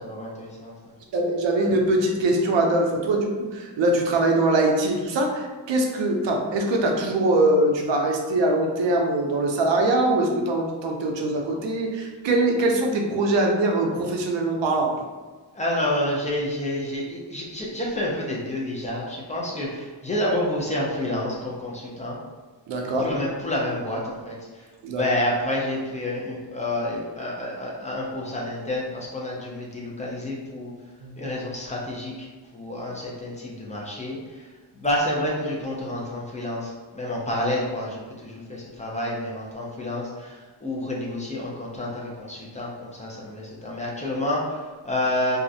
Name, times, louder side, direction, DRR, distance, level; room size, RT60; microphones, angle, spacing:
voice 1, 0.0-0.9 15.5-22.2 23.0-30.7 31.2-45.4, left 1 dB, 20° left, -4 dB, 0.3 m, -29 dB
voice 2, 1.1-14.9 22.7-23.1 24.8-25.0 31.0-31.1, right 2 dB, 75° right, 1 dB, 0.6 m, -22 dB
2.3 x 2.0 x 2.6 m, 1.4 s
wide cardioid pair, 145°, 44 cm